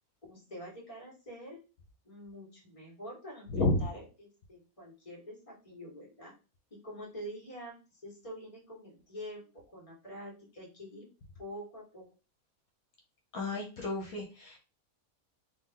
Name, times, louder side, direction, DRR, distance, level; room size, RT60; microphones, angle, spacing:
voice 1, 0.3-1.6 2.0-6.3 6.8-11.1 11.4-12.0, equal, 25° left, -4 dB, 1.7 m, -46 dB
voice 2, 3.5-3.8 13.3-14.6, left 2 dB, 70° left, 1 dB, 1.3 m, -31 dB
3.3 x 2.9 x 3.7 m, 0.32 s
omnidirectional pair, 1.5 m